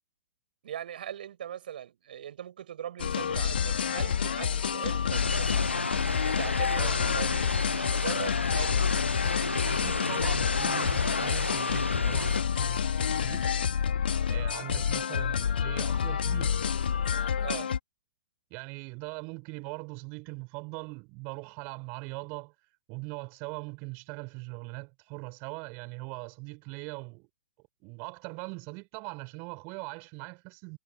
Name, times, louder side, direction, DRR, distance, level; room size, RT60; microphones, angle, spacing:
voice 1, 0.6-5.7 6.3-8.9 17.4-17.7, right 10 dB, 55° right, 7.4 m, -40 dB
sound 1, 3.0-17.8, left 7 dB, 60° left, 2.3 m, -28 dB
sound 2, 5.1-12.4, left 2 dB, 85° left, 0.5 m, -32 dB
voice 2, 6.8-7.2 9.6-13.5 14.0-16.6 18.5-22.5 22.9-27.3 27.8-30.8, right 31 dB, 30° right, 6.1 m, -41 dB
figure-of-eight pair, 115°, 6 cm